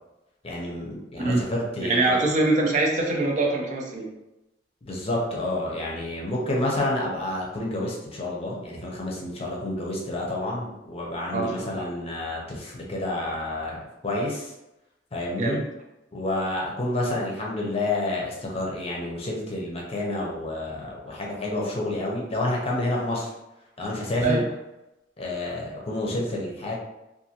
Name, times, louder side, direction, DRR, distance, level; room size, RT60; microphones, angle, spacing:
voice 1, 0.4-2.2 4.8-13.8 14.0-14.5 15.1-15.6 16.1-23.3 23.8-24.4 25.2-26.8, left 1 dB, 35° left, -2 dB, 0.6 m, -29 dB
voice 2, 1.8-4.1 11.3-11.7 15.4-15.6 24.2-24.5, right 2 dB, 45° right, 0 dB, 0.5 m, -23 dB
2.6 x 2.5 x 2.8 m, 0.95 s
head